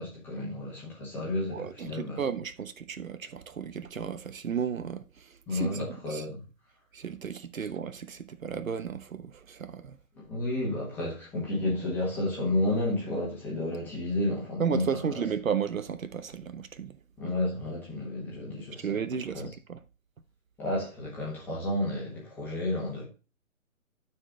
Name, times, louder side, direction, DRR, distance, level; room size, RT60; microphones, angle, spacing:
voice 1, 0.0-2.2 5.5-6.4 7.6-7.7 10.2-15.2 17.2-19.1 19.3-19.5 20.6-23.0, left 1 dB, 5° left, 1.5 m, -31 dB
voice 2, 1.5-5.0 5.5-5.8 6.1-6.2 6.9-10.0 14.6-16.9 18.8-19.4 19.7-19.8, right 7 dB, 70° right, 1.0 m, -33 dB
12.5 x 4.5 x 3.9 m
hypercardioid pair, 165°, 42 cm